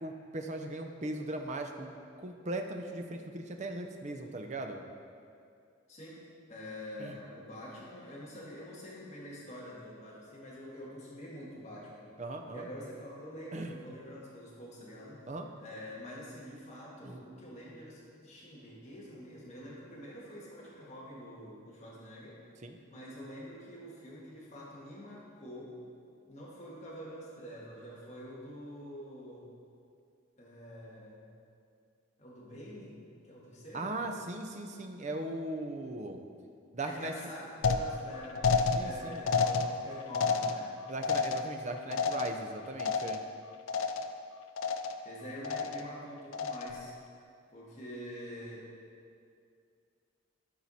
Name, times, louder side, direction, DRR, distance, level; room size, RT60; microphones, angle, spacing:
voice 1, 0.0-4.8 7.0-7.1 12.2-12.7 13.5-13.7 15.3-15.5 17.0-17.2 22.6-22.8 33.7-36.2 36.7-37.1 38.8-39.3 40.9-43.2, right 2 dB, 35° right, 5 dB, 0.5 m, -38 dB
voice 2, 5.9-6.2 6.5-12.2 12.5-15.2 15.6-22.4 22.9-25.8 26.3-29.5 30.4-31.3 32.2-33.0 33.2-33.9 36.8-40.8 45.0-46.9 47.5-48.7, equal, 30° left, -6 dB, 1.7 m, -46 dB
sound 1, 37.6-43.4 43.7-44.2 44.6-45.1 45.4-46.0 46.3-46.9, left 4 dB, 70° left, 0.4 m, -31 dB
12.5 x 4.7 x 4.1 m, 2.3 s
head